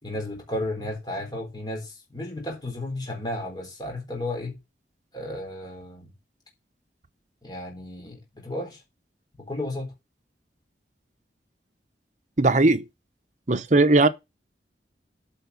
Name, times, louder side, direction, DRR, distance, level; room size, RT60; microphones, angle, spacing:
voice 1, 0.0-4.6 5.1-6.1 7.4-8.8 9.4-9.9, left 1 dB, 25° left, 4.1 m, -33 dB
voice 2, 12.4-12.8 13.5-14.1, right 2 dB, 40° right, 0.8 m, -18 dB
8.6 x 5.7 x 6.9 m
head